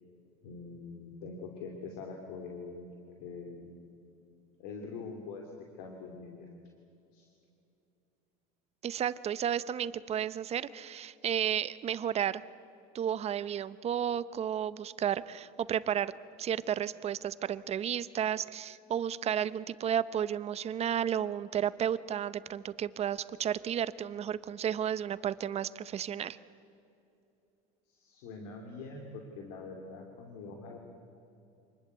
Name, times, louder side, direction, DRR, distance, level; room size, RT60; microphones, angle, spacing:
voice 1, 0.4-2.9 3.2-4.1 4.6-5.4 5.8-6.5 7.1-7.3 27.9-30.8, left 4 dB, 80° left, 2 dB, 3.0 m, -44 dB
voice 2, 8.8-12.4 12.9-16.1 16.4-26.4, right 9 dB, 35° right, 16 dB, 0.8 m, -32 dB
26.5 x 20.0 x 8.1 m, 2.7 s
supercardioid pair, 115°, 18 cm